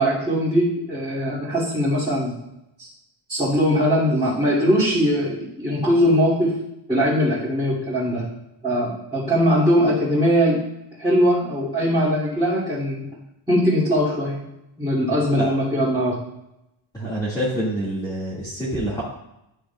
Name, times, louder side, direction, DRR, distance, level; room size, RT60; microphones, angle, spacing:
voice 1, 0.0-2.4 2.8-2.9 3.3-6.5 6.9-8.3 8.6-10.6 11.0-13.1 13.5-14.4 14.8-16.2, equal, 10° right, -12 dB, 2.6 m, -20 dB
voice 2, 16.9-19.0, right 1 dB, 10° left, -10 dB, 1.9 m, -26 dB
11.5 x 6.4 x 2.3 m, 0.87 s
cardioid pair, 150°, 50 cm